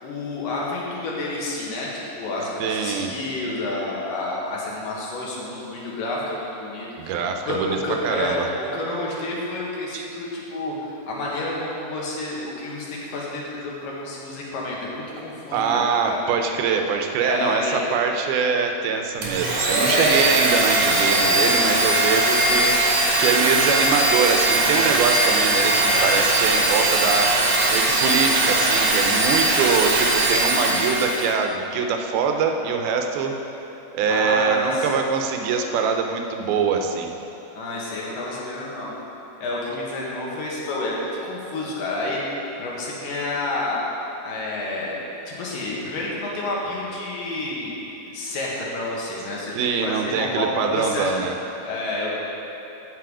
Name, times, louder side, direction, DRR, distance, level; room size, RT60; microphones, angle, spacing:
voice 1, 0.0-7.2 7.4-16.2 17.2-17.8 19.8-20.3 34.1-34.9 37.5-38.9 39.4-42.2 42.6-43.8 44.2-45.0 45.3-47.8 48.1-51.3 51.6-52.1, left 2 dB, 70° left, -4 dB, 3.1 m, -29 dB
voice 2, 2.6-3.1 7.0-7.8 8.0-8.5 9.9-10.1 15.5-27.3 27.7-33.3 33.9-37.1 49.6-51.3, right 5 dB, 85° right, 4 dB, 2.7 m, -23 dB
Domestic sounds home sounds, 19.2-31.3, right 2 dB, 55° right, 2.0 m, -20 dB
15.0 x 5.5 x 4.9 m, 3.0 s
omnidirectional pair, 4.3 m